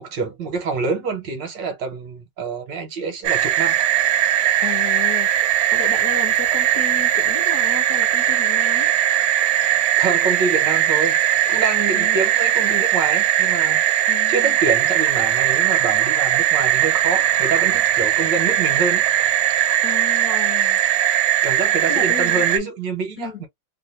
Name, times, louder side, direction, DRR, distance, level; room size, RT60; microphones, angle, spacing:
voice 1, 0.0-3.8 10.0-19.1 21.4-23.5, right 4 dB, 65° right, 1.5 m, -26 dB
sound 1, 3.2-22.6, right 11 dB, 80° right, 1.4 m, -19 dB
voice 2, 4.6-8.9 11.9-12.2 14.1-14.6 19.8-20.8 21.9-22.5 23.2-23.4, left 5 dB, 65° left, 1.1 m, -33 dB
3.3 x 2.5 x 2.5 m
omnidirectional pair, 2.2 m